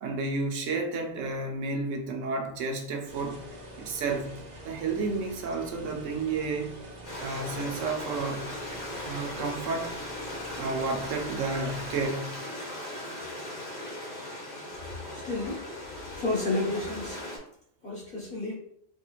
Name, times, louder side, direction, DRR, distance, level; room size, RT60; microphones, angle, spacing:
voice 1, 0.0-3.4 3.8-4.4 4.6-6.8 7.2-8.5 9.0-10.0 10.6-12.4, right 3 dB, 75° right, 1.0 m, -31 dB
sound 1, 3.0-12.1, right 1 dB, 45° right, 0.6 m, -45 dB
Stream, 7.0-17.4, left 1 dB, 90° left, 1.7 m, -38 dB
voice 2, 15.1-15.7 16.2-17.2 17.8-18.5, left 2 dB, 45° left, 1.0 m, -31 dB
4.2 x 2.9 x 2.3 m
omnidirectional pair, 1.3 m